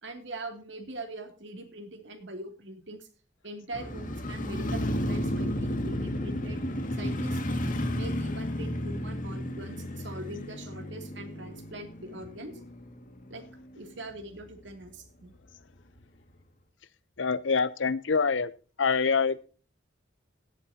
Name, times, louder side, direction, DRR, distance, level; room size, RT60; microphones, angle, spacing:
voice 1, 0.0-3.1 3.4-6.6 7.0-7.4 7.9-12.6 13.3-13.4 13.7-15.3, right 1 dB, 70° right, 6 dB, 2.7 m, -42 dB
Motorcycle, 3.7-13.8 14.2-14.3, left 1 dB, 45° left, 2.1 m, -33 dB
voice 2, 17.2-18.5 18.8-19.4, left 5 dB, 75° left, 17 dB, 0.8 m, -25 dB
17.5 x 11.0 x 2.8 m, 0.35 s
head